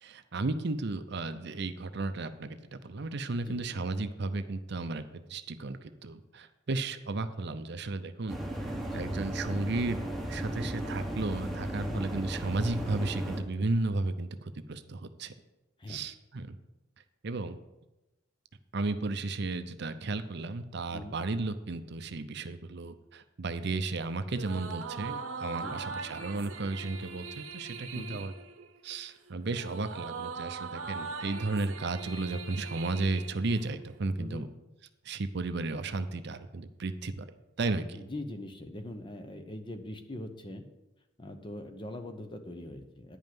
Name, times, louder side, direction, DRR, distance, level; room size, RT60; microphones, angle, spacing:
voice 1, 0.0-10.0 10.3-15.3 15.9-16.6 17.2-17.6 18.7-28.3 28.8-34.5 35.0-37.3 37.6-38.0, right 3 dB, 55° right, 10 dB, 0.6 m, -34 dB
sound 1, 8.3-13.4, right 1 dB, ahead, 1.2 m, -35 dB
sound 2, 24.3-34.0, right 4 dB, 90° right, 1.0 m, -41 dB
voice 2, 37.9-40.6 41.2-43.2, left 1 dB, 25° left, 7 dB, 0.9 m, -42 dB
10.0 x 5.4 x 7.7 m, 1.0 s
head